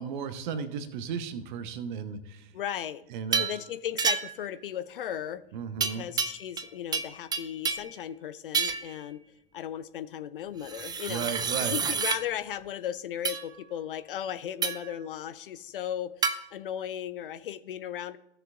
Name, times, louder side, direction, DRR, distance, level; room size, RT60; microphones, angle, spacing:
voice 1, 0.0-2.5 3.1-3.4 5.5-6.1 11.1-11.8, right 6 dB, 50° right, 10 dB, 1.1 m, -35 dB
voice 2, 2.5-3.0 3.3-5.4 5.8-9.2 9.5-18.2, left 10 dB, 65° left, 13 dB, 0.7 m, -36 dB
sound 1, 3.3-3.6 4.0-4.5 5.8-6.7 6.9-7.9 8.5-8.9 10.6-12.2 13.2-13.4 14.6-14.9 16.2-16.4, right 5 dB, 15° right, 0.5 m, -29 dB
15.5 x 6.7 x 2.5 m, 0.83 s
figure-of-eight pair, 85°, 30 cm